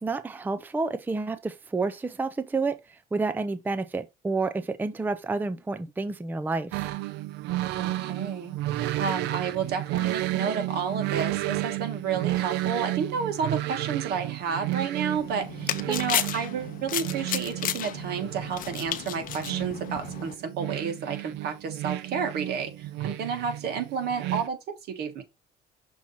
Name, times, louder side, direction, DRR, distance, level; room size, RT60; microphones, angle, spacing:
voice 1, 0.0-2.8 3.1-6.9 15.9-16.0, right 3 dB, 10° right, 0.5 m, -29 dB
sound 1, 6.7-24.5, right 16 dB, 90° right, 0.5 m, -32 dB
voice 2, 7.8-8.5 9.0-24.6 24.9-25.2, right 6 dB, 70° right, 1.6 m, -31 dB
sound 2, 15.2-20.3, left 11 dB, 55° left, 0.6 m, -33 dB
6.2 x 2.9 x 5.5 m
cardioid pair, 110°, 17 cm